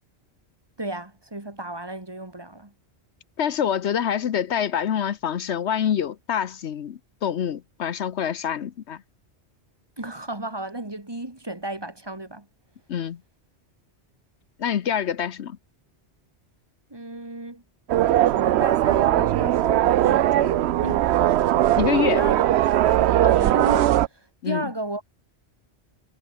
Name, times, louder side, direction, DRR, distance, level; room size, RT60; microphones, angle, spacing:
voice 1, 0.8-2.7 10.0-12.5 16.9-17.6 18.3-21.1 22.1-22.7 23.2-25.0, right 2 dB, 20° right, 2.2 m, -34 dB
voice 2, 3.4-9.0 12.9-13.2 14.6-15.6 21.8-22.2 24.4-24.7, left 8 dB, 75° left, 1.1 m, -26 dB
sound 1, 17.9-24.1, right 13 dB, 75° right, 0.8 m, -20 dB
omnidirectional pair, 1.1 m